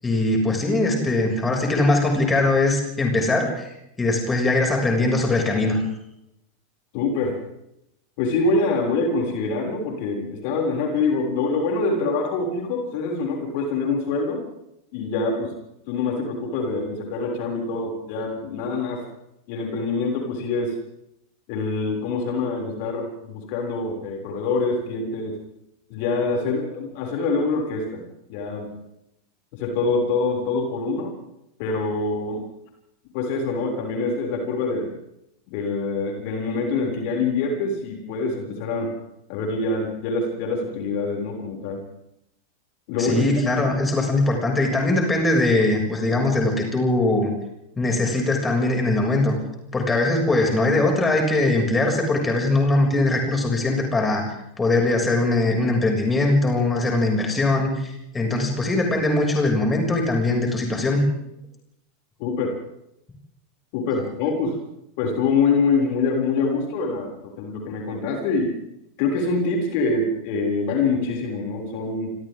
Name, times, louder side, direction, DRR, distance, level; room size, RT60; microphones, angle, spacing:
voice 1, 0.0-5.8 43.0-47.3 47.8-49.3 49.7-54.2 54.6-61.0, left 2 dB, 15° left, 1 dB, 7.0 m, -21 dB
voice 2, 6.9-7.4 8.2-14.4 14.9-15.5 15.9-19.0 19.5-20.7 21.5-25.4 25.9-28.0 28.3-28.7 29.5-31.1 31.6-32.4 33.1-34.9 35.5-38.9 39.3-41.8 42.9-43.2 43.5-43.6 62.2-62.5 63.7-64.6 65.0-68.5 69.0-72.1, left 3 dB, 50° left, 1 dB, 6.9 m, -25 dB
28.0 x 26.5 x 3.9 m, 0.81 s
figure-of-eight pair, 85°, 0 cm